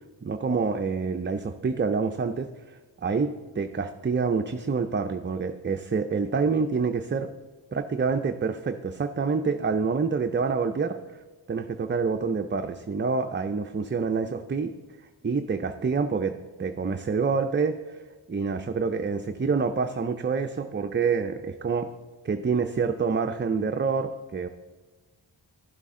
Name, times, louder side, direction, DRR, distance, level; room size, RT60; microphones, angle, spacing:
voice 1, 0.2-7.3 7.7-11.2 11.5-14.7 15.2-18.0 18.3-21.9 22.2-24.5, right 5 dB, 25° right, 7 dB, 0.4 m, -27 dB
11.5 x 11.0 x 3.7 m, 1.3 s
wide cardioid pair, 80°, 47 cm